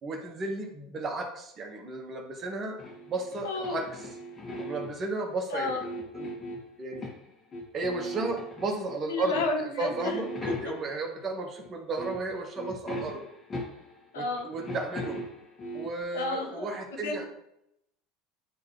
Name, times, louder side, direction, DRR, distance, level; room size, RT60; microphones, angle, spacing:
voice 1, 0.0-2.8 3.1-3.9 4.6-5.9 6.1-6.5 6.8-7.1 7.7-9.3 9.8-13.2 14.1-15.2 15.7-17.2, right 2 dB, 35° right, 1 dB, 1.8 m, -34 dB
sound 1, 2.8-5.1 5.6-7.3 7.5-9.0 9.3-9.6 9.9-11.1 11.6-11.7 12.0-14.1 14.4-16.0, equal, 30° left, 2.1 m, -39 dB
voice 2, 3.4-3.8 5.5-5.8 9.1-10.2 14.1-14.5 16.1-16.7 17.0-17.2, left 2 dB, 85° left, 1 dB, 1.6 m, -31 dB
10.0 x 3.9 x 3.3 m, 0.77 s
hypercardioid pair, 85°, 0 cm